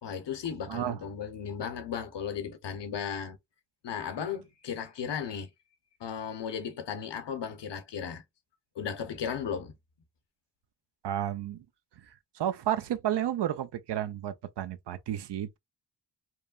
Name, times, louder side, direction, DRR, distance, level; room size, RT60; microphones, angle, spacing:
voice 1, 0.0-3.4 3.8-5.5 6.0-8.2 8.8-9.7, left 7 dB, 70° left, 0.8 m, -35 dB
voice 2, 0.7-1.0 11.0-11.6 12.1-15.6, right 11 dB, 65° right, 0.5 m, -32 dB
3.0 x 2.1 x 2.3 m
cardioid pair, 50°, 44 cm